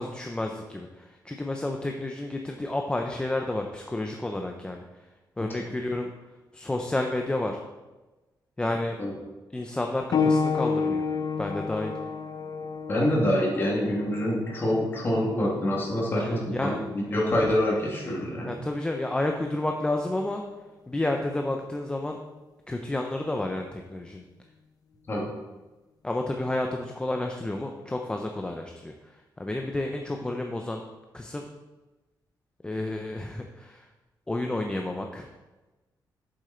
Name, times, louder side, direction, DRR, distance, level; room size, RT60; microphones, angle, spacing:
voice 1, 0.0-4.8 5.4-6.1 6.5-7.6 8.6-9.0 9.5-11.1 11.4-11.9 16.2-16.8 17.1-17.2 18.5-20.4 20.9-22.2 22.7-24.2 26.0-30.8 31.1-31.5 32.6-33.9 34.3-35.3, left 2 dB, 10° left, 2 dB, 0.6 m, -30 dB
sound 1, 10.1-20.3 21.3-21.4 22.2-22.3, left 5 dB, 55° left, 0.6 m, -32 dB
voice 2, 12.9-18.5 25.1-25.3, left 1 dB, 30° left, -4 dB, 2.6 m, -26 dB
8.3 x 7.6 x 4.4 m, 1.1 s
wide cardioid pair, 155°, 8 cm